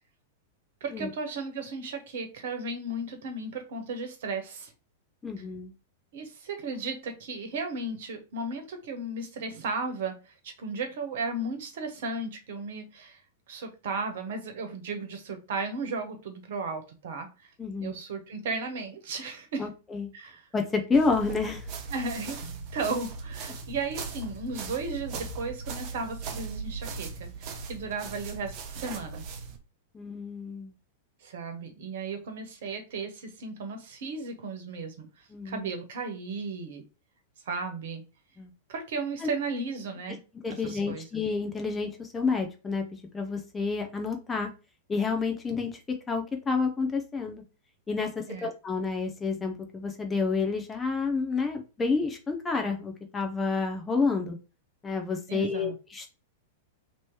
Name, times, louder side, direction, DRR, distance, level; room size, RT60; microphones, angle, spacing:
voice 1, 0.8-4.7 6.1-13.2 13.5-17.5 17.8-19.7 20.1-20.4 21.9-22.5 22.7-29.2 31.2-35.1 35.4-36.8 37.5-38.0 38.7-40.2 40.6-41.0 48.3-48.5 55.3-55.8, right 3 dB, 65° right, 1.2 m, -35 dB
voice 2, 5.2-5.7 17.6-18.0 19.6-20.1 20.5-21.7 29.9-30.7 35.3-35.7 38.4-38.5 39.2-39.3 40.1-40.2 40.4-44.5 44.9-47.4 47.9-48.1 48.4-54.4 54.8-56.1, left 4 dB, 15° left, 0.7 m, -29 dB
sound 1, 20.9-29.6, right 4 dB, 45° right, 0.8 m, -39 dB
3.0 x 3.0 x 4.6 m
hypercardioid pair, 100°, 0 cm